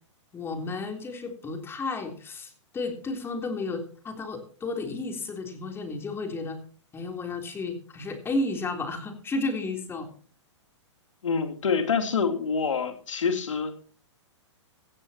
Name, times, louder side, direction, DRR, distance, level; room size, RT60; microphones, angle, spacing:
voice 1, 0.3-6.6 6.9-10.1, left 3 dB, 15° left, 6 dB, 3.5 m, -32 dB
voice 2, 11.2-13.8, left 5 dB, 85° left, 8 dB, 3.3 m, -26 dB
16.5 x 15.5 x 3.0 m, 0.43 s
hypercardioid pair, 135°, 16 cm